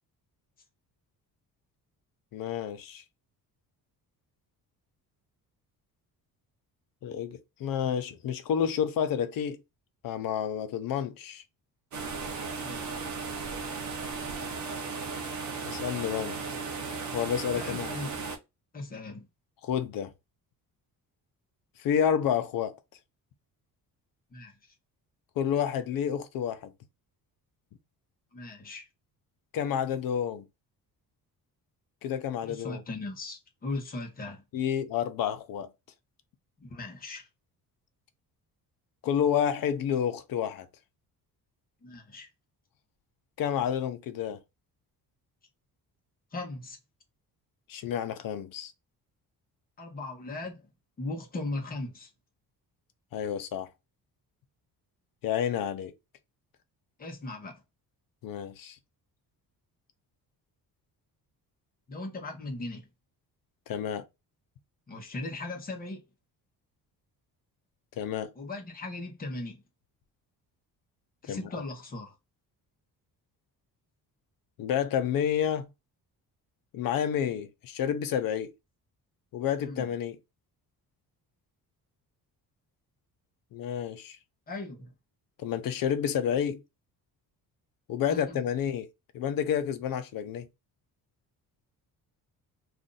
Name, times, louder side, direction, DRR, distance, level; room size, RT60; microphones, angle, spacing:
voice 1, 2.3-3.0 7.0-9.6 10.0-11.4 15.6-16.4 17.1-17.9 19.6-20.1 21.8-22.7 25.4-26.7 29.5-30.4 32.0-32.8 34.5-35.7 39.0-40.7 43.4-44.4 47.7-48.7 53.1-53.7 55.2-55.9 58.2-58.8 63.7-64.0 68.0-68.3 71.3-71.4 74.6-75.7 76.7-78.5 79.3-80.2 83.5-84.2 85.4-86.6 87.9-88.9 89.1-90.5, left 8 dB, 65° left, 0.7 m, -29 dB
sound 1, 11.9-18.4, right 4 dB, 50° right, 0.8 m, -36 dB
voice 2, 17.5-18.2 18.7-19.3 24.3-24.5 28.3-28.9 32.4-34.4 36.6-37.3 41.8-42.3 46.3-46.8 49.8-50.6 51.0-52.1 57.0-57.6 61.9-62.9 64.9-66.1 68.4-69.6 71.2-72.1 79.6-79.9 84.5-84.9 88.1-88.4, left 2 dB, 25° left, 0.9 m, -38 dB
2.6 x 2.5 x 3.8 m
cardioid pair, 160°, 37 cm